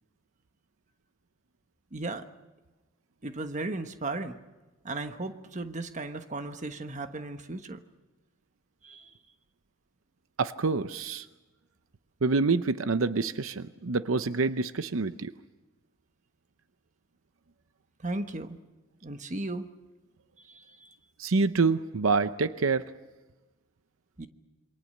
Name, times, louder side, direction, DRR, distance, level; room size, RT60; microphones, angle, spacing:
voice 1, 1.9-2.3 3.2-4.4 4.8-7.8 8.8-9.1 18.0-18.6 19.0-19.7 20.4-20.9 24.2-24.3, right 2 dB, 35° right, 8 dB, 1.2 m, -36 dB
voice 2, 10.4-11.3 12.2-15.3 21.2-22.9, right 4 dB, 80° right, 12 dB, 0.7 m, -27 dB
27.5 x 24.0 x 6.6 m, 1.2 s
head